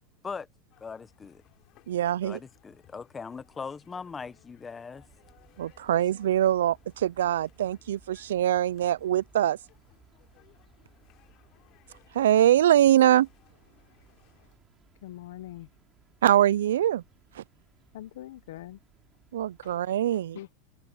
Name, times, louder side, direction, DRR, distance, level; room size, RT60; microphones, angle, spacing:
sound 1, 0.7-14.5, left 19 dB, 50° left, 3.5 m, -63 dB
voice 1, 0.8-1.4 2.2-5.0, left 5 dB, 15° left, 1.1 m, -40 dB
voice 2, 1.9-2.4 5.6-9.6 12.1-13.3 16.2-17.0 17.3-17.4 19.3-20.4, right 11 dB, 85° right, 0.4 m, -23 dB
sound 2, 4.9-19.8, right 7 dB, 25° right, 6.0 m, -62 dB
voice 3, 15.0-15.7 17.9-18.8 19.6-20.0 20.3-20.6, left 14 dB, 75° left, 1.0 m, -43 dB
supercardioid pair, 125°, 0 cm